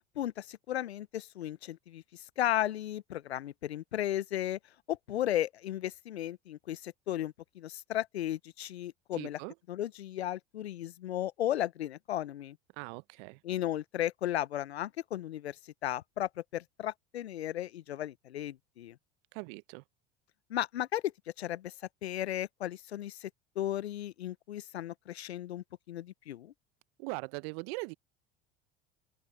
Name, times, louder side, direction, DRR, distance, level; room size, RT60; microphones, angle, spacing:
voice 1, 0.2-4.6 4.9-9.4 9.7-12.6 13.4-19.0 20.5-21.1 21.4-21.7 22.0-23.3 23.6-26.5, left 12 dB, 85° left, 0.9 m, -35 dB
voice 2, 9.1-9.5 12.8-13.4 19.3-19.8 27.0-27.9, right 29 dB, 65° right, 1.1 m, -40 dB
open air
hypercardioid pair, 75°, 31 cm